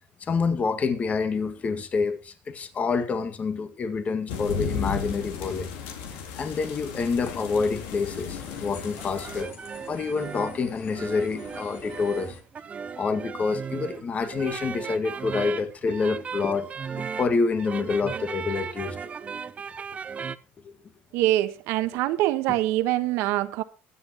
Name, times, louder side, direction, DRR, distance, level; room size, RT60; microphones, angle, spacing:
voice 1, 0.2-5.7 6.4-9.5 9.9-12.4 13.0-19.1 20.6-20.7, left 4 dB, 30° left, 2.0 m, -27 dB
sound 1, 4.3-9.4, left 6 dB, 85° left, 3.5 m, -34 dB
sound 2, 7.1-12.4, left 7 dB, 65° left, 3.6 m, -46 dB
sound 3, 9.0-20.4, right 6 dB, 30° right, 0.7 m, -36 dB
voice 2, 21.1-23.6, right 15 dB, 75° right, 1.3 m, -24 dB
22.5 x 7.9 x 3.0 m
cardioid pair, 115°, 4 cm